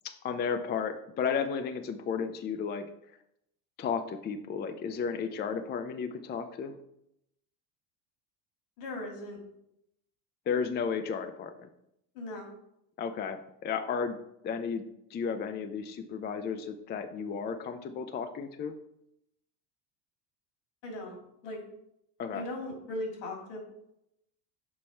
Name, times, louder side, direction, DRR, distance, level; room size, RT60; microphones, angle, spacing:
voice 1, 0.0-2.8 3.8-6.7 10.5-11.7 13.0-14.2 14.4-14.8 15.1-18.7 22.2-22.4, left 6 dB, 25° left, 8 dB, 0.4 m, -33 dB
voice 2, 8.8-9.4 12.1-12.5 20.8-21.6 22.3-23.6, left 1 dB, 75° left, 1 dB, 2.7 m, -38 dB
6.6 x 4.1 x 4.3 m, 0.79 s
supercardioid pair, 95°, 47 cm